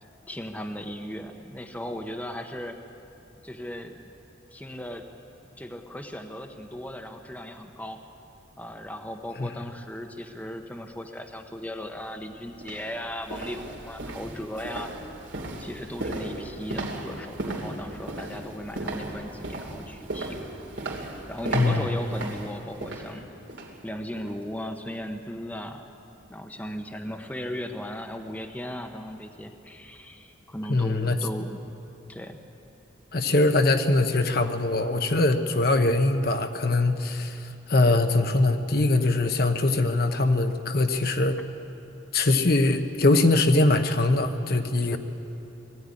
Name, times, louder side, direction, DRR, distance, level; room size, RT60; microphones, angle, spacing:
voice 1, 0.3-2.8 3.4-4.0 4.5-5.0 5.6-8.0 8.6-14.9 15.6-20.5 21.0-23.3 23.8-25.9 26.3-31.6 32.1-32.4 44.9-45.0, equal, 10° left, 4 dB, 0.9 m, -37 dB
sound 1, 11.8-12.0 12.5-23.8 24.2-24.4 24.8-24.9, right 2 dB, 75° right, 2.9 m, -36 dB
voice 2, 21.5-21.9 30.7-31.2 33.1-41.4 42.1-45.0, left 2 dB, 50° left, 6 dB, 1.0 m, -22 dB
20.0 x 14.5 x 9.8 m, 2.7 s
head